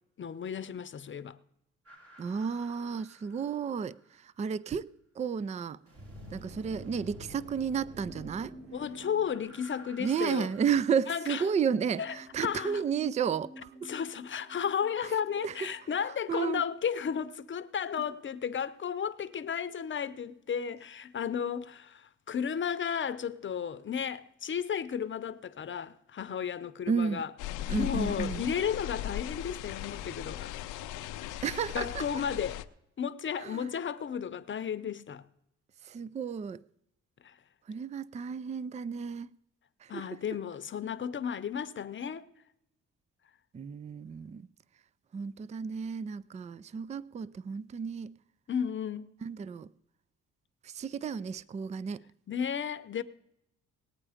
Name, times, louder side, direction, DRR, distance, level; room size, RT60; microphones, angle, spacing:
voice 1, 0.2-1.4 8.7-10.5 11.1-11.4 12.0-12.2 12.4-12.8 13.8-27.3 27.8-30.5 31.7-32.7 33.0-35.3 37.2-37.4 39.9-42.3 48.5-49.1 52.3-53.0, left 7 dB, 40° left, 0.8 m, -33 dB
sound 1, 1.8-4.1 5.9-11.0, equal, 50° right, 3.0 m, -50 dB
voice 2, 2.2-4.0 4.4-4.9 5.2-5.8 6.3-8.5 10.0-13.7 15.4-15.5 16.3-16.6 26.9-27.2 27.7-28.4 31.4-32.0 33.4-33.6 35.9-36.6 37.7-39.3 39.9-40.1 43.5-44.4 45.1-48.2 49.2-49.7 50.6-52.0, right 6 dB, 25° right, 0.4 m, -32 dB
sound 2, 7.6-17.0 17.2-17.3, right 1 dB, 5° right, 0.9 m, -53 dB
sound 3, 27.4-32.6, left 13 dB, 90° left, 0.6 m, -38 dB
18.5 x 8.8 x 5.0 m
cardioid pair, 90°, 30 cm